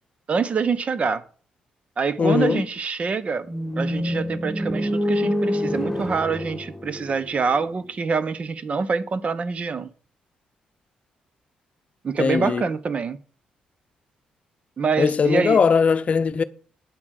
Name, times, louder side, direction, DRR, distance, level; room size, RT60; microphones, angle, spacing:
voice 1, 0.3-1.2 2.0-9.9 12.0-13.2 14.8-15.6, right 5 dB, 45° right, 1.0 m, -25 dB
voice 2, 2.2-2.6 12.2-12.7 15.0-16.4, left 5 dB, 50° left, 0.7 m, -20 dB
sound 1, 3.5-7.6, left 1 dB, 5° left, 2.3 m, -26 dB
9.6 x 7.3 x 6.6 m
supercardioid pair, 65°, 3 cm